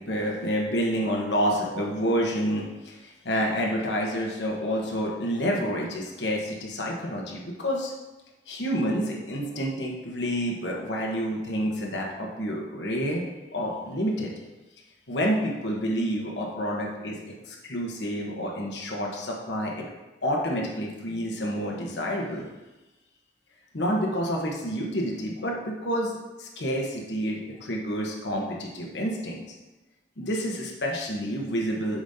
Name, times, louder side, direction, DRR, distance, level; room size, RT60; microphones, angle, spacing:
voice 1, 0.0-7.9 8.5-13.2 13.5-14.3 15.1-17.2 17.5-19.8 20.2-22.5 23.7-29.4 30.2-32.0, equal, 80° left, -1 dB, 1.1 m, -29 dB
7.1 x 5.1 x 2.7 m, 1.1 s
head